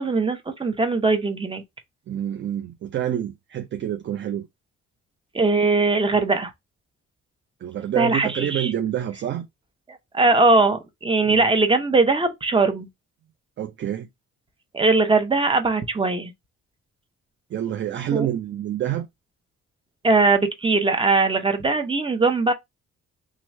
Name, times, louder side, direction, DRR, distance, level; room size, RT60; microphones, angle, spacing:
voice 1, 0.0-1.6 5.3-6.5 7.9-8.7 9.9-12.9 14.7-16.3 18.1-18.3 20.0-22.5, right 3 dB, 15° right, 0.8 m, -20 dB
voice 2, 2.1-4.5 7.6-9.5 11.2-11.5 13.6-14.1 17.5-19.1, right 11 dB, 40° right, 0.4 m, -27 dB
3.0 x 2.4 x 4.3 m
cardioid pair, 90°, 30 cm